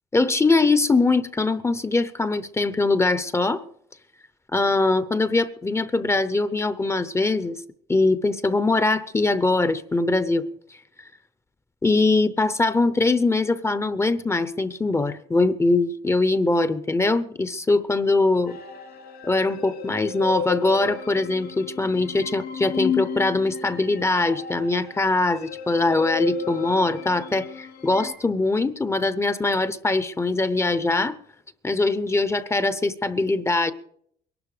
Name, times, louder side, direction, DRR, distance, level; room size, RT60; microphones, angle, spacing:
voice 1, 0.1-3.6 4.5-7.6 7.9-10.5 11.8-18.6 19.2-31.2 31.6-33.7, left 3 dB, 15° left, 0.7 m, -22 dB
sound 1, 18.5-28.1, left 7 dB, 70° left, 3.7 m, -33 dB
21.5 x 12.0 x 5.0 m
cardioid pair, 110°, 17 cm